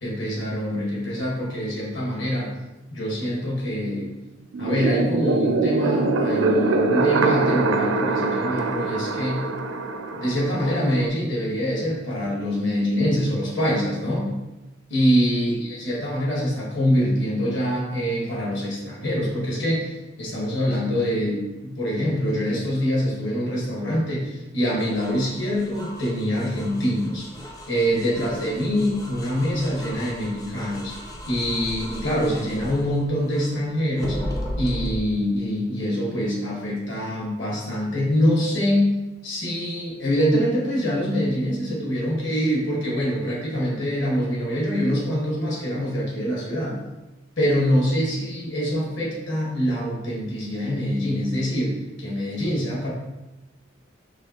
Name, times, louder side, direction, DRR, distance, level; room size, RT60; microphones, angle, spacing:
voice 1, 0.0-2.5 2.9-4.1 4.6-9.4 10.1-14.3 14.9-31.0 31.3-34.3 34.6-38.9 39.2-46.8 47.4-52.9, equal, 60° left, -4 dB, 1.5 m, -24 dB
sound 1, 4.5-11.1, right 3 dB, 70° right, 0.4 m, -23 dB
sound 2, 24.8-33.6 34.0-35.0, equal, 20° left, 0.5 m, -36 dB
4.8 x 3.2 x 2.9 m, 1.0 s
head